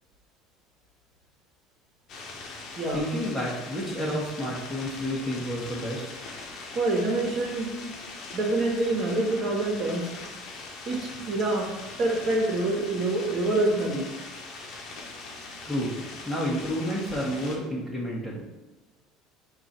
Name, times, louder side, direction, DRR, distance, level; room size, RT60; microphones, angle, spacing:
sound 1, 2.1-17.6, left 3 dB, 55° left, 0.9 m, -41 dB
voice 1, 2.9-6.1 15.6-18.4, equal, 5° left, -6 dB, 1.1 m, -30 dB
voice 2, 6.7-7.7 8.3-10.1 10.8-11.7 12.0-14.0, right 2 dB, 50° right, -1 dB, 1.3 m, -26 dB
4.7 x 2.6 x 4.2 m, 1.1 s
supercardioid pair, 85°, 0 cm